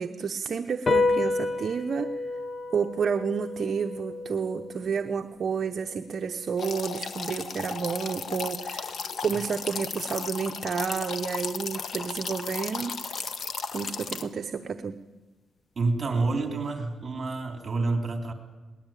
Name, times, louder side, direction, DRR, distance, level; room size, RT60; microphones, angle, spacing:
voice 1, 0.0-2.2 2.7-8.9 9.2-13.2 13.7-15.0, right 6 dB, 50° right, 7 dB, 0.8 m, -30 dB
sound 1, 0.9-7.6, left 3 dB, 30° left, 0.8 m, -31 dB
sound 2, 6.6-14.2, left 5 dB, 55° left, 1.5 m, -35 dB
voice 2, 15.8-18.3, right 3 dB, 35° right, 5 dB, 3.5 m, -28 dB
21.5 x 19.0 x 9.1 m, 1.2 s
cardioid pair, 120°, 0 cm